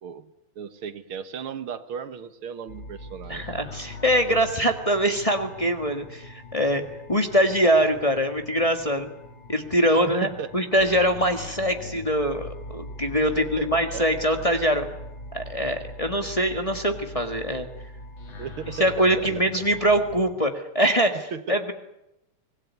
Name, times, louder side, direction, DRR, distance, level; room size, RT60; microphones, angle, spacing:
voice 1, 0.0-3.5 9.9-10.5 13.4-14.1 18.4-19.3 21.3-21.6, right 7 dB, 80° right, 11 dB, 2.2 m, -36 dB
sound 1, 2.7-20.3, left 1 dB, 65° left, 3.3 m, -41 dB
voice 2, 3.3-6.8 7.1-9.1 9.5-14.9 15.3-17.7 18.8-21.7, equal, 15° left, 5 dB, 1.6 m, -23 dB
24.5 x 20.0 x 9.6 m, 0.86 s
omnidirectional pair, 2.3 m